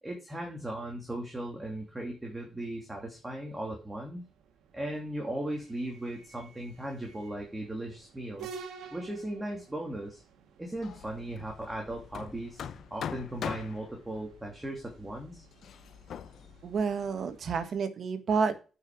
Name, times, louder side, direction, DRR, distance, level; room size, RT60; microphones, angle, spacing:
voice 1, 0.0-4.2 4.7-8.5 8.9-10.2 10.6-15.5, right 1 dB, 15° right, 1 dB, 2.8 m, -37 dB
sound 1, 0.6-17.8, right 5 dB, 80° right, 1.6 m, -53 dB
Hammer, 10.8-17.6, left 8 dB, 65° left, 0.7 m, -43 dB
voice 2, 16.6-18.6, right 5 dB, 55° right, 11 dB, 1.6 m, -29 dB
9.1 x 5.8 x 6.1 m, 0.34 s
cardioid pair, 90°, 0 cm